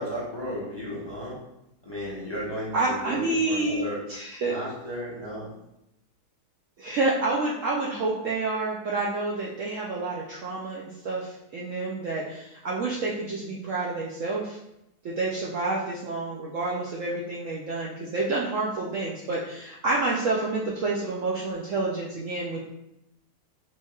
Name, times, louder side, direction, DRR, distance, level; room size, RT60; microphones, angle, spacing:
voice 1, 0.0-1.4 1.8-4.0 4.5-5.5, equal, 15° left, -9 dB, 1.2 m, -34 dB
voice 2, 2.7-4.6 6.8-14.6 15.0-22.7, right 3 dB, 65° right, -3 dB, 0.8 m, -29 dB
5.2 x 3.4 x 2.3 m, 0.85 s
omnidirectional pair, 1.7 m